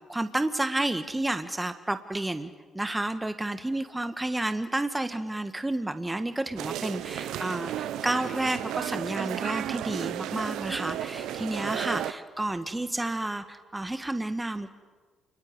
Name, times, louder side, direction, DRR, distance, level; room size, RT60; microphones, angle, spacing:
voice 1, 0.1-14.7, right 1 dB, 15° right, 9 dB, 1.6 m, -31 dB
sound 1, 6.6-12.1, right 11 dB, 70° right, 1.0 m, -33 dB
28.5 x 21.0 x 9.7 m, 1.5 s
hypercardioid pair, 50°, 0 cm